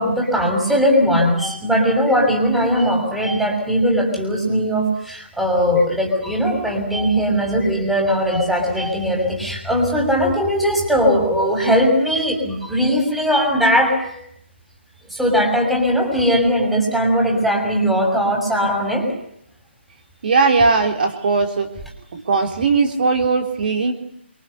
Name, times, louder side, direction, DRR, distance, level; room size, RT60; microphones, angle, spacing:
voice 1, 0.0-14.2 15.1-19.1, equal, ahead, 0 dB, 6.5 m, -19 dB
voice 2, 20.2-21.7 22.1-23.9, right 4 dB, 50° right, 4 dB, 4.0 m, -18 dB
29.5 x 24.0 x 6.9 m, 0.71 s
figure-of-eight pair, 150°, 7 cm